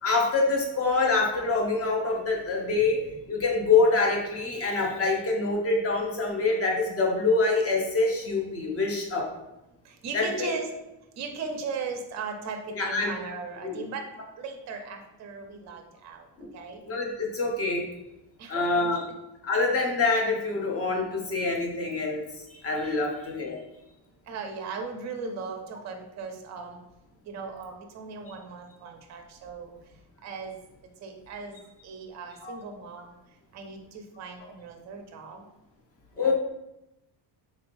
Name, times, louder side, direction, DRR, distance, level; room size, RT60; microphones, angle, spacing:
voice 1, 0.0-3.0 3.3-9.3 10.1-10.5 12.8-13.1 13.6-13.8 16.4-16.5 16.8-17.8 18.5-19.0 19.4-23.6 32.4-32.5 36.2-36.3, left 3 dB, 30° left, 0 dB, 0.6 m, -25 dB
voice 2, 9.8-10.7 11.2-14.1 14.4-16.3 16.5-16.8 18.4-18.8 22.8-23.0 24.3-26.8 27.2-29.8 30.2-30.6 31.0-33.2 33.5-35.5 36.2-36.3, right 4 dB, 40° right, 4 dB, 0.4 m, -38 dB
3.9 x 3.1 x 2.5 m, 0.91 s
cardioid pair, 175°, 46 cm